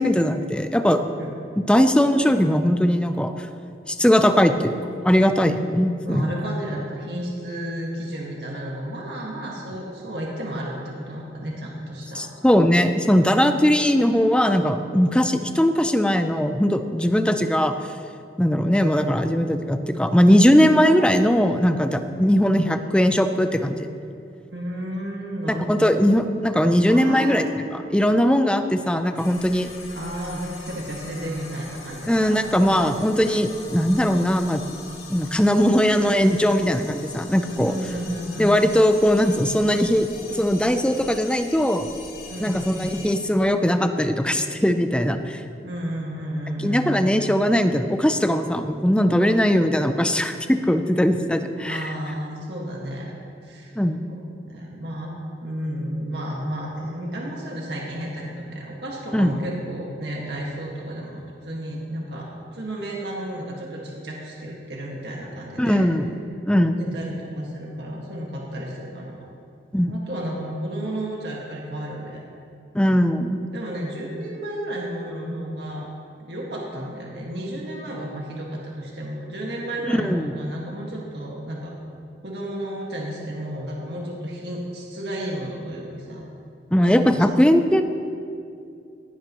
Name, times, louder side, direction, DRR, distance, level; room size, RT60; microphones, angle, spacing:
voice 1, 0.0-1.0 1.6-3.3 3.9-4.8 5.0-6.3 12.1-17.7 18.4-23.9 25.7-27.4 27.7-29.7 32.1-34.6 35.1-37.7 38.4-41.9 42.4-45.4 46.6-51.9 53.8-54.0 59.1-59.4 65.6-66.1 66.5-67.0 69.7-70.0 72.7-73.4 79.9-80.3 86.7-87.8, equal, 5° left, 8 dB, 0.5 m, -20 dB
voice 2, 6.0-12.3 24.5-25.7 26.9-27.4 29.9-32.3 37.5-38.5 42.3-42.7 45.6-47.1 51.6-53.2 53.4-53.7 54.4-55.1 55.4-65.8 66.5-69.2 69.9-72.2 73.5-75.9 76.2-81.8 82.2-86.2 86.8-86.9, right 1 dB, 70° right, -3 dB, 1.8 m, -32 dB
sound 1, 29.1-43.2, left 4 dB, 65° left, 2.3 m, -42 dB
18.0 x 11.5 x 3.1 m, 2.5 s
head